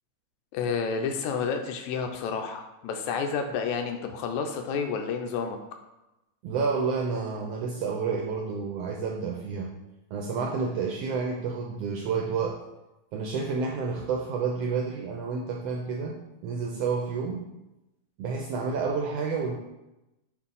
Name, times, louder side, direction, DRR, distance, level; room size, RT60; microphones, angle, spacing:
voice 1, 0.5-5.6, left 5 dB, 85° left, 5 dB, 2.0 m, -30 dB
voice 2, 6.4-9.7 10.1-12.6 13.1-17.4 18.2-19.5, right 5 dB, 80° right, 0 dB, 1.4 m, -30 dB
6.8 x 2.6 x 5.4 m, 0.97 s
omnidirectional pair, 3.3 m